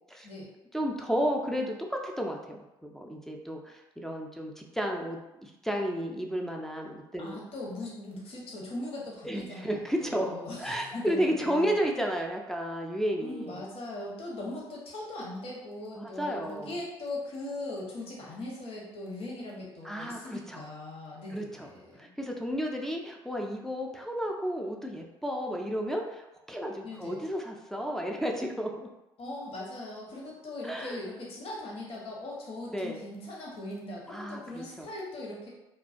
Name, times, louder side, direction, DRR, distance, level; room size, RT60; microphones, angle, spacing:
voice 1, 0.7-7.4 9.2-13.6 16.0-16.7 19.8-20.6 21.3-21.7 22.0-28.9 30.6-31.0 32.7-33.0 34.1-34.9, equal, 5° left, 0 dB, 0.4 m, -32 dB
voice 2, 7.2-11.9 13.2-22.1 26.8-27.2 29.2-35.5, left 2 dB, 50° left, -3 dB, 0.8 m, -40 dB
2.3 x 2.2 x 2.5 m, 0.95 s
hypercardioid pair, 55°, 13 cm